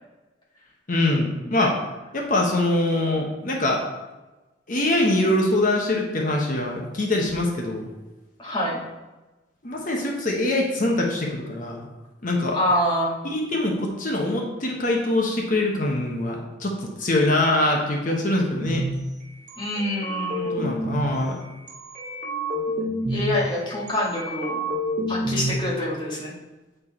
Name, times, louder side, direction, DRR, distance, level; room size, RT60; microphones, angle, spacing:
voice 1, 0.9-1.7 2.1-3.9 4.7-7.9 9.6-11.9 12.2-12.6 13.2-18.8 20.5-21.4, left 1 dB, 45° left, 0 dB, 1.0 m, -23 dB
voice 2, 8.4-8.8 12.5-13.2 19.6-20.7 23.1-24.6 25.1-26.3, left 1 dB, 25° left, -6 dB, 2.1 m, -26 dB
sound 1, 18.6-18.9 19.5-21.1 21.7-23.3 23.9-25.5, right 1 dB, 45° right, 1.7 m, -28 dB
8.3 x 4.5 x 4.3 m, 1.1 s
head